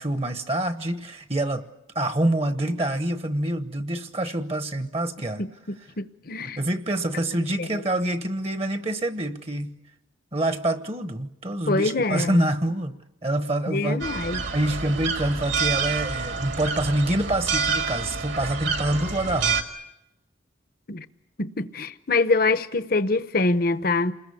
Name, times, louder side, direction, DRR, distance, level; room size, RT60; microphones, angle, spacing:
voice 1, 0.0-1.6 1.9-5.4 6.4-9.8 10.3-13.0 13.2-19.6, right 1 dB, 30° right, 1.1 m, -26 dB
voice 2, 5.4-6.6 7.6-7.7 11.7-12.4 13.7-14.4 20.9-21.1 21.4-24.1, left 3 dB, 45° left, 0.9 m, -25 dB
sound 1, 14.0-19.6, right 5 dB, 65° right, 2.2 m, -28 dB
29.0 x 21.0 x 8.5 m
head